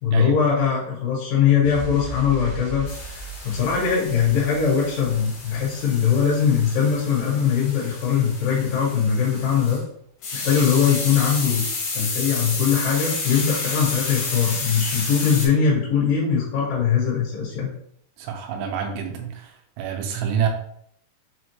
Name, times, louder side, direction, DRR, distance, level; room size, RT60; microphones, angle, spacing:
voice 1, 0.0-2.9 3.4-9.8 10.3-11.6 11.9-17.7, left 7 dB, 65° left, -6 dB, 2.5 m, -21 dB
sound 1, 1.6-8.1 8.4-8.5, right 4 dB, 75° right, 1.6 m, -39 dB
sound 2, 2.9-9.8 10.2-15.5, left 3 dB, 90° left, 1.6 m, -31 dB
voice 2, 18.2-20.5, right 8 dB, 90° right, 3 dB, 2.8 m, -27 dB
6.5 x 2.2 x 2.9 m, 0.68 s
omnidirectional pair, 4.9 m